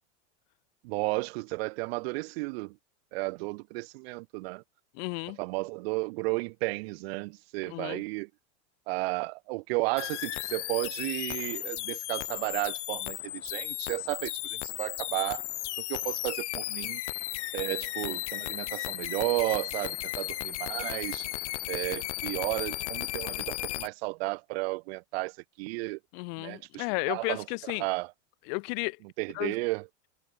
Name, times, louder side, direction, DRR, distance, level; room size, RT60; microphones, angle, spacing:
voice 1, 0.8-2.7 3.1-4.6 5.4-8.3 8.9-15.4 15.9-17.0 17.5-21.3 21.7-26.0 26.4-27.4 27.8-28.1 29.2-29.8, right 26 dB, 55° right, 1.4 m, -33 dB
voice 2, 4.9-5.4 7.6-8.0 26.1-27.8 28.5-29.0 29.3-29.5, left 36 dB, 50° left, 2.2 m, -33 dB
sound 1, 10.0-23.9, left 17 dB, 75° left, 3.9 m, -35 dB
supercardioid pair, 150°, 35 cm